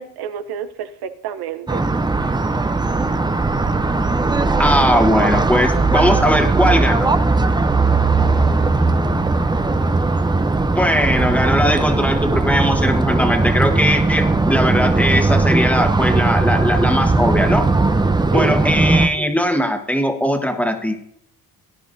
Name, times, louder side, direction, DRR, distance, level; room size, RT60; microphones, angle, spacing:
voice 1, 0.0-1.8 6.1-6.2 18.3-18.9, right 8 dB, 80° right, 10 dB, 0.8 m, -29 dB
sound 1, 1.7-19.1, right 3 dB, 10° right, 0.6 m, -18 dB
voice 2, 4.6-7.1 10.7-17.6 18.3-21.0, equal, 5° left, 4 dB, 1.4 m, -19 dB
18.0 x 10.5 x 2.7 m, 0.72 s
cardioid pair, 95°, 38 cm